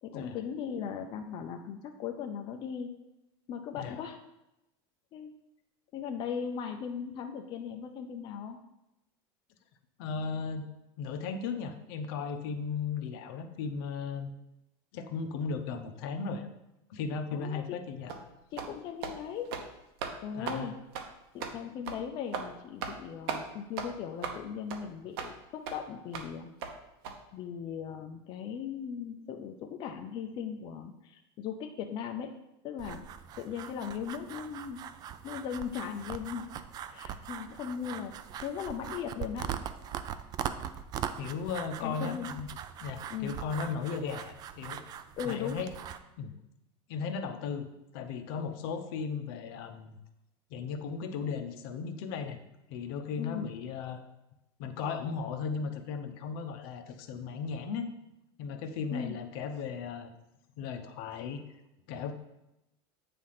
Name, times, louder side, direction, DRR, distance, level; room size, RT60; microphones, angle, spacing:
voice 1, 0.0-2.9 3.5-4.2 5.1-5.3 5.9-8.6 17.3-17.8 18.5-19.5 20.2-20.8 21.3-26.5 27.3-32.3 32.6-33.0 33.4-34.8 35.2-36.5 36.9-38.1 38.4-39.5 41.8-42.3 43.1-43.3 45.2-45.6 53.2-53.5 58.9-59.1, left 7 dB, 35° left, 4 dB, 0.5 m, -38 dB
voice 2, 10.0-10.7 11.0-14.3 14.9-16.5 16.9-18.1 20.3-20.7 41.2-42.5 42.8-44.8 45.2-45.7 46.2-46.3 46.9-47.7 47.9-50.0 50.5-52.4 52.7-54.0 54.6-57.9 58.4-60.1 60.6-61.4 61.9-62.1, left 5 dB, 65° left, 7 dB, 0.8 m, -36 dB
sound 1, 18.1-18.2 18.6-18.7 19.0-19.2 19.5-19.7 20.0-20.1 20.5-20.6 20.9-21.1 21.4-21.5 21.9-22.0 22.3-22.5 22.8-23.0 23.3-23.4 23.8-23.9 24.2-24.4 24.7-24.8 25.2-25.3 25.7-25.8 26.1-26.3 26.6-26.7 27.0-27.1, right 6 dB, 70° right, 0.9 m, -36 dB
sound 2, 32.8-46.0, right 9 dB, 30° right, 0.4 m, -41 dB
8.6 x 3.4 x 5.7 m, 0.91 s
supercardioid pair, 155°, 13 cm